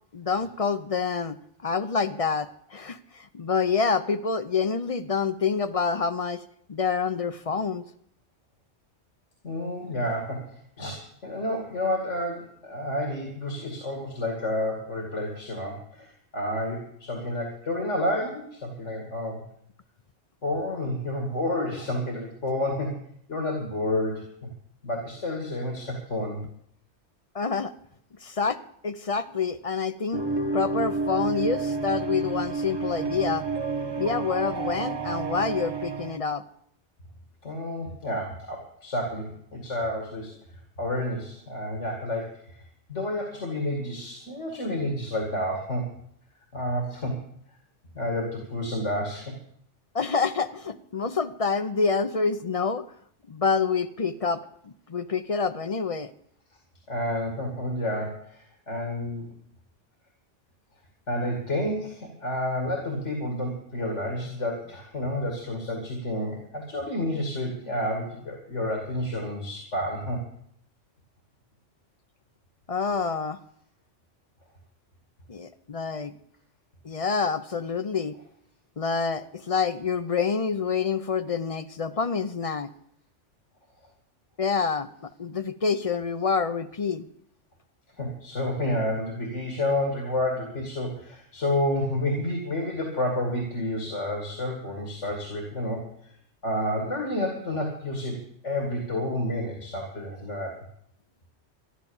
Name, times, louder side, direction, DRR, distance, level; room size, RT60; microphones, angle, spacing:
voice 1, 0.1-1.4 1.6-6.4 6.7-7.8 27.3-27.7 28.2-30.2 30.5-33.5 34.0-36.4 49.9-52.8 53.3-56.1 72.7-73.4 75.3-76.1 76.8-78.2 78.8-82.7 84.4-87.1, left 5 dB, 40° left, 12 dB, 0.6 m, -27 dB
voice 2, 9.4-19.4 20.4-23.0 23.3-24.2 24.8-26.4 37.4-40.3 40.8-42.6 42.9-45.9 46.5-47.2 47.9-49.3 56.9-59.3 61.1-70.2 88.0-95.8 96.4-98.2 98.4-100.5, left 1 dB, 75° left, 1 dB, 2.5 m, -30 dB
sound 1, 30.1-36.2, right 3 dB, 25° right, 1.0 m, -30 dB
13.0 x 12.0 x 7.1 m, 0.67 s
omnidirectional pair, 1.2 m